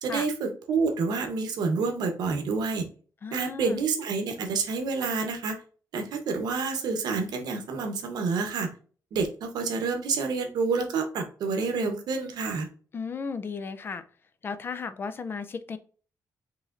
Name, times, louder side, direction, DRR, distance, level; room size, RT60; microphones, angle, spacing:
voice 1, 0.0-2.9 3.3-5.6 5.9-8.7 9.1-12.7, right 4 dB, 85° right, 5 dB, 0.9 m, -28 dB
voice 2, 3.2-3.8 12.9-14.0 14.4-15.8, left 5 dB, 35° left, 12 dB, 0.3 m, -35 dB
4.8 x 3.2 x 2.5 m, 0.41 s
wide cardioid pair, 160°, 7 cm